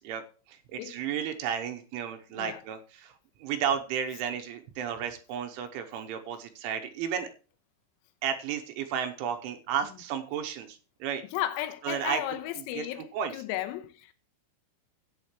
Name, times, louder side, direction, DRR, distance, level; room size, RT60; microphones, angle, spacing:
voice 1, 0.5-3.1 3.4-7.3 8.2-11.2 11.8-12.2 12.7-12.9 13.1-13.4, right 8 dB, 80° right, 3.1 m, -33 dB
voice 2, 11.3-14.1, left 13 dB, 85° left, 3.7 m, -34 dB
14.0 x 9.3 x 3.1 m
omnidirectional pair, 5.9 m